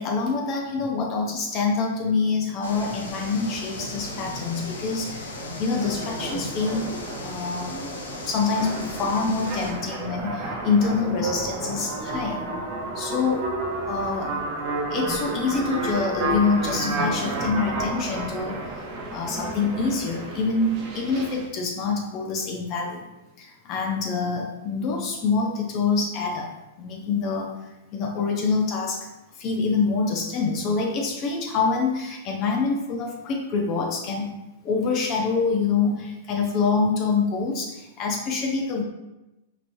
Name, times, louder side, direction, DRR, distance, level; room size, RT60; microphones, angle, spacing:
voice 1, 0.0-5.3 5.6-6.9 7.2-7.7 8.2-12.5 12.9-13.5 13.9-14.3 14.9-18.7 19.1-23.1 23.4-26.5 26.8-27.5 27.9-29.1 29.4-34.3 34.6-38.8, left 4 dB, 40° left, 0 dB, 0.6 m, -26 dB
sound 1, 2.6-9.7, left 2 dB, 90° left, 0.7 m, -38 dB
sound 2, 2.7-21.5, right 2 dB, 40° right, 0.7 m, -32 dB
4.3 x 3.0 x 2.6 m, 0.97 s
hypercardioid pair, 130°, 0 cm